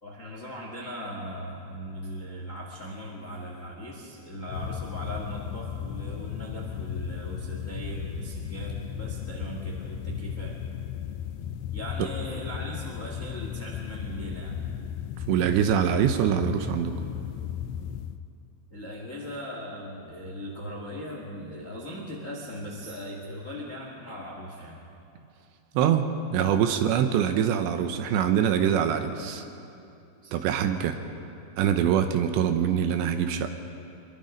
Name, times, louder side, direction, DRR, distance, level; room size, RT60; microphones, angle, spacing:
voice 1, 0.0-10.6 11.7-14.6 18.7-24.8 30.2-30.3, equal, 40° left, -1 dB, 1.1 m, -38 dB
sound 1, 4.5-18.2, left 10 dB, 85° left, 2.3 m, -36 dB
voice 2, 15.3-17.0 25.7-29.4 30.3-31.0 31.6-33.5, right 9 dB, 75° right, 7 dB, 2.9 m, -24 dB
25.0 x 22.5 x 5.2 m, 2.7 s
omnidirectional pair, 5.5 m